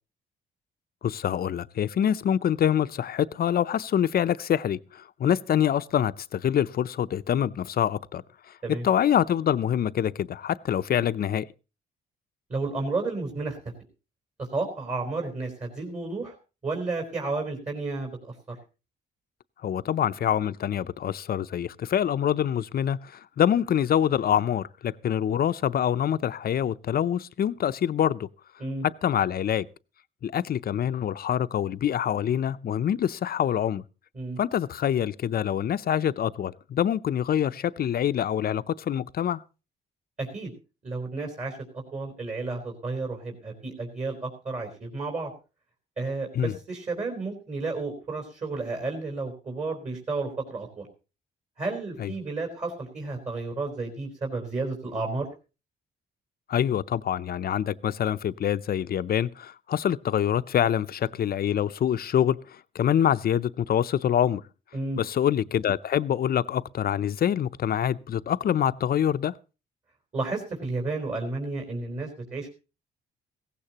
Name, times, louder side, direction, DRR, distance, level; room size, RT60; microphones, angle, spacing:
voice 1, 1.0-4.8 5.2-8.2 8.8-11.5 19.6-28.3 29.0-29.7 30.2-33.8 34.4-39.4 46.3-46.5 52.0-52.1 56.5-62.4 62.7-64.4 65.0-69.3, left 9 dB, 50° left, 0.6 m, -25 dB
voice 2, 12.5-13.6 14.5-16.3 16.6-18.1 28.6-28.9 34.1-34.4 40.2-40.5 40.8-41.6 41.9-45.3 46.0-50.9 51.6-55.3 64.7-65.0 70.1-72.5, right 3 dB, 35° right, 4.0 m, -32 dB
16.5 x 15.5 x 2.9 m
cardioid pair, 90°, 20 cm